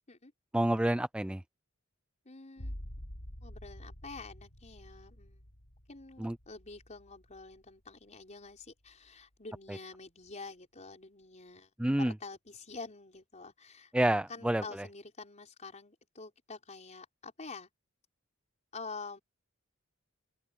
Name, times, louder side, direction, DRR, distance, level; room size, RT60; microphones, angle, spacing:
voice 1, 0.5-1.4 6.2-6.4 11.8-12.1 13.9-14.9, right 1 dB, 5° right, 0.3 m, -29 dB
voice 2, 2.2-2.8 3.4-5.4 5.9-13.9 14.3-17.7 18.7-19.2, left 3 dB, 35° left, 4.8 m, -47 dB
sound 1, 2.6-8.0 8.5-9.1, equal, 80° left, 3.7 m, -48 dB
open air
head